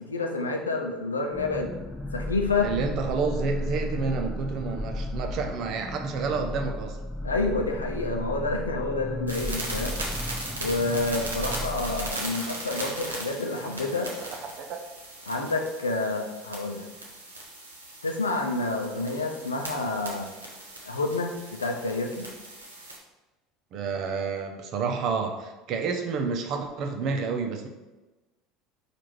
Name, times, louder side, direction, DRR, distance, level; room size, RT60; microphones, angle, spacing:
voice 1, 0.0-1.7 2.1-2.7 7.2-10.0 10.6-14.1 15.3-16.9 18.0-20.3 20.8-21.3 21.6-22.3, left 3 dB, 85° left, 2 dB, 0.5 m, -28 dB
sound 1, 1.3-12.1, left 1 dB, ahead, 0.9 m, -34 dB
voice 2, 2.6-7.0 13.5-13.7 14.2-14.8 23.7-27.7, right 5 dB, 50° right, 4 dB, 0.6 m, -30 dB
sound 2, 9.3-23.0, right 1 dB, 85° right, 0.9 m, -38 dB
4.8 x 2.5 x 4.5 m, 1.1 s
figure-of-eight pair, 70°, 0 cm